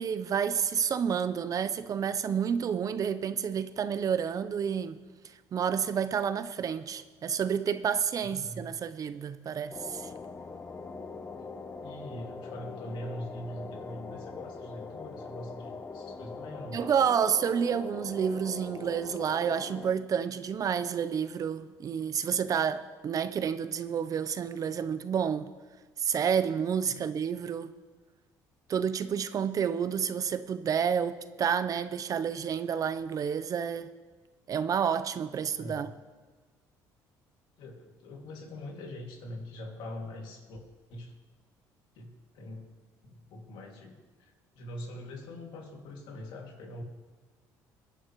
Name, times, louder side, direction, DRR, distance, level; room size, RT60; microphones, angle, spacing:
voice 1, 0.0-5.0 5.5-10.1 16.7-25.5 26.0-27.7 28.7-33.9 34.5-35.9, right 7 dB, 45° right, 0.7 m, -29 dB
voice 2, 8.2-8.6 11.4-11.5 11.8-16.8 26.8-27.0 35.6-35.9 37.6-40.6 40.9-41.1 42.0-42.1 42.3-42.6 43.0-46.8, left 1 dB, 75° left, 2.4 m, -43 dB
sound 1, 9.7-19.9, left 4 dB, 25° left, 0.7 m, -42 dB
23.0 x 10.0 x 3.1 m
supercardioid pair, 90°, 8 cm